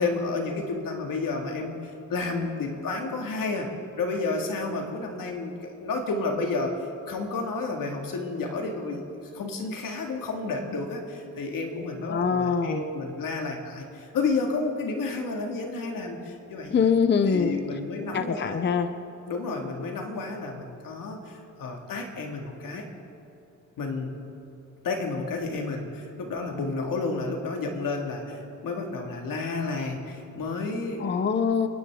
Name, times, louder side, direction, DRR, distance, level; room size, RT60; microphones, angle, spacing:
voice 1, 0.0-1.8 2.1-3.7 4.0-6.7 7.1-16.9 17.3-18.6 19.3-22.9 23.8-24.2 24.8-31.2, left 3 dB, 80° left, 2 dB, 2.1 m, -31 dB
voice 2, 12.0-12.8 16.7-17.6 18.1-18.9 31.0-31.7, left 6 dB, 35° left, 9 dB, 0.6 m, -23 dB
29.0 x 10.5 x 3.6 m, 2.7 s
cardioid pair, 110°, 33 cm